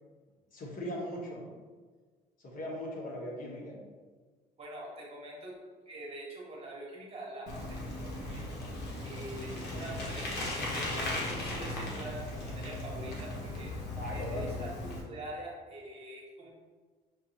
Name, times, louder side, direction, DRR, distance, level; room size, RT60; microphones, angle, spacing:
voice 1, 0.5-1.5 2.4-3.8 14.0-14.6, equal, 55° left, -3 dB, 1.2 m, -39 dB
voice 2, 4.6-5.5 5.8-8.5 9.0-10.3 10.7-13.7 14.1-16.5, right 1 dB, 35° right, -3 dB, 1.3 m, -44 dB
Bicycle, 7.5-15.0, left 2 dB, 75° left, 1.1 m, -37 dB
6.3 x 2.6 x 2.9 m, 1.4 s
cardioid pair, 110°, 17 cm